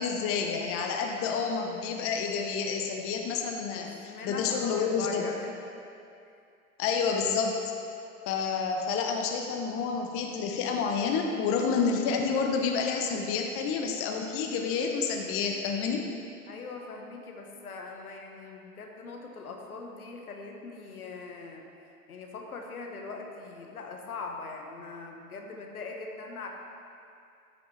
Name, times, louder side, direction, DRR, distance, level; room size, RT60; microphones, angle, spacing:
voice 1, 0.0-5.2 6.8-7.6 8.3-16.1, left 5 dB, 30° left, 2 dB, 0.8 m, -29 dB
voice 2, 3.7-5.5 16.5-21.6 22.1-26.5, left 3 dB, 80° left, 2 dB, 1.1 m, -41 dB
12.5 x 6.1 x 3.2 m, 2.5 s
figure-of-eight pair, 90°, 44 cm